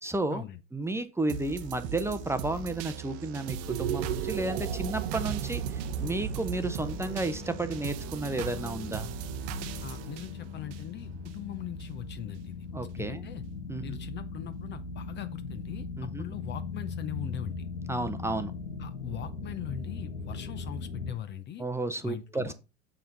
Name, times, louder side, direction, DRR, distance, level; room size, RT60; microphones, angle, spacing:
voice 1, 0.0-0.4 0.7-9.1 12.7-13.3 13.7-14.0 16.0-16.2 17.9-18.5 21.6-22.5, right 2 dB, 5° right, 0.8 m, -32 dB
sound 1, 1.3-11.3 11.8-11.9, right 6 dB, 45° right, 0.9 m, -39 dB
sound 2, 3.5-9.9, right 8 dB, 70° right, 0.9 m, -36 dB
sound 3, 4.8-21.1, left 4 dB, 80° left, 1.4 m, -40 dB
voice 2, 9.8-12.7 13.0-13.4 13.8-17.5 18.8-21.6 22.0-22.5, left 10 dB, 30° left, 0.7 m, -41 dB
7.2 x 5.6 x 3.9 m
figure-of-eight pair, 80°, 36 cm